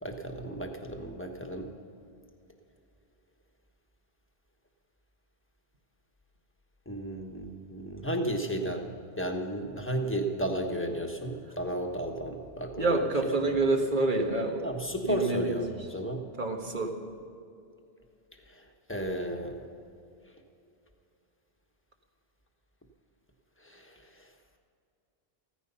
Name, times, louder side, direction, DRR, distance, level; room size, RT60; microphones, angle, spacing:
voice 1, 0.0-1.7 6.8-13.1 14.6-16.3 18.5-19.6 23.6-24.3, right 1 dB, 10° left, 3 dB, 1.4 m, -33 dB
voice 2, 12.8-14.7 15.0-15.6 16.4-16.9, right 2 dB, 50° right, 3 dB, 1.6 m, -27 dB
15.5 x 14.0 x 5.6 m, 2.5 s
omnidirectional pair, 1.1 m